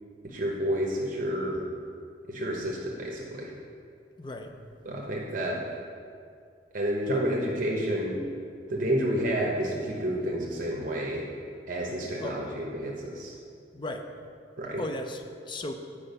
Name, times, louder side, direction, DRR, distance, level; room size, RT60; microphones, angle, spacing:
voice 1, 0.2-1.6 2.3-3.5 4.8-5.6 6.7-8.2 8.7-11.3 11.7-13.4 14.6-14.8, equal, 50° right, -2 dB, 1.0 m, -30 dB
voice 2, 4.2-4.5 12.2-12.4 13.7-14.1 14.8-15.7, left 1 dB, 25° left, 5 dB, 0.5 m, -36 dB
8.7 x 4.9 x 5.4 m, 2.3 s
head